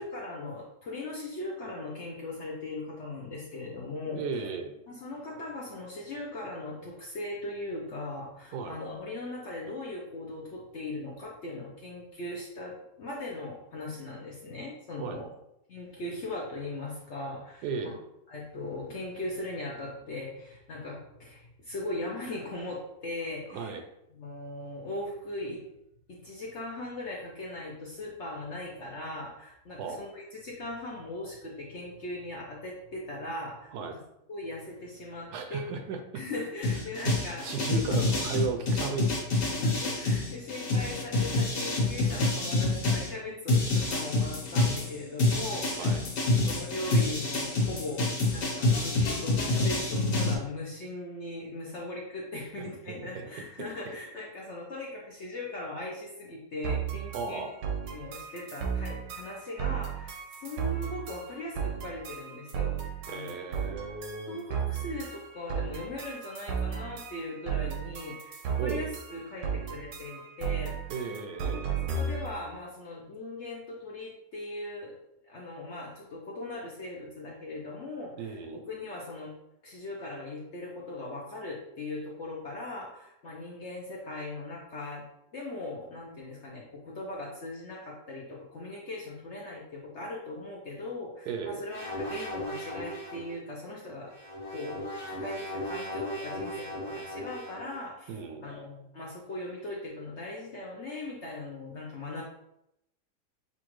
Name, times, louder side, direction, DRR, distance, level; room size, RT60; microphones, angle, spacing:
voice 1, 0.0-4.5 4.9-15.3 15.7-17.9 18.3-23.8 24.1-25.6 26.1-33.7 34.3-35.7 36.1-37.5 39.6-45.9 46.5-48.9 49.2-57.5 57.8-62.8 63.1-63.4 64.3-70.8 71.4-74.9 75.2-79.3 79.6-85.0 85.3-94.1 94.5-102.2, left 2 dB, 60° left, -3 dB, 0.8 m, -39 dB
voice 2, 4.1-4.7 8.5-8.8 15.0-15.2 17.6-18.0 23.5-23.8 29.8-30.0 33.7-33.9 35.3-36.2 37.0-39.2 43.3-43.4 45.8-46.0 52.6-53.3 53.6-53.7 57.1-57.5 63.1-64.4 68.6-68.9 70.9-71.6 78.2-78.6 91.3-91.6 98.1-98.4, right 5 dB, 75° right, 5 dB, 1.0 m, -35 dB
sound 1, 36.6-43.1 43.5-50.3, left 2 dB, 80° left, 1.7 m, -27 dB
sound 2, 56.6-72.4, right 7 dB, 90° right, 1.4 m, -35 dB
sound 3, 91.7-93.3 94.1-97.7, equal, 25° left, 1.5 m, -37 dB
7.0 x 2.4 x 3.0 m, 0.83 s
omnidirectional pair, 1.9 m